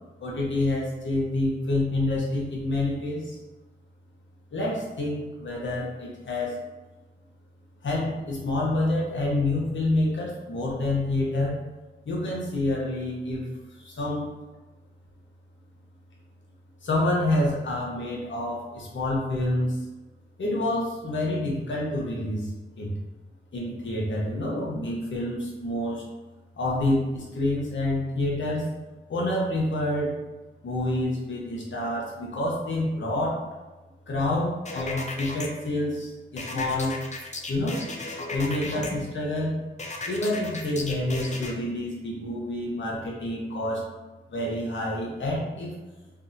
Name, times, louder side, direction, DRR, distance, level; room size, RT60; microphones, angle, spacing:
voice 1, 0.2-3.4 4.5-6.6 7.8-11.6 12.0-13.5 13.8-14.3 16.8-19.8 20.4-23.0 23.5-26.0 26.6-28.7 29.1-30.1 30.6-33.4 34.1-37.0 37.5-37.8 38.3-39.6 40.1-43.8 44.3-45.7, left 1 dB, 75° left, -3 dB, 0.8 m, -28 dB
sound 1, 34.7-35.5 36.4-38.9 39.8-41.5, left 2 dB, 35° left, 0.5 m, -35 dB
2.6 x 2.5 x 2.5 m, 1.2 s
cardioid pair, 40°, 20 cm